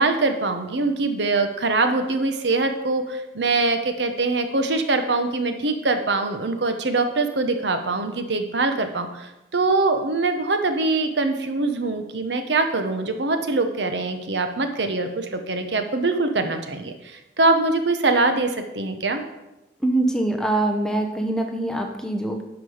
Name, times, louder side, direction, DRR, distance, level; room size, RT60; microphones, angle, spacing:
voice 1, 0.0-19.2, right 3 dB, 70° right, 7 dB, 1.0 m, -23 dB
voice 2, 19.8-22.4, right 2 dB, 5° left, 3 dB, 0.8 m, -23 dB
10.5 x 6.1 x 5.0 m, 0.97 s
head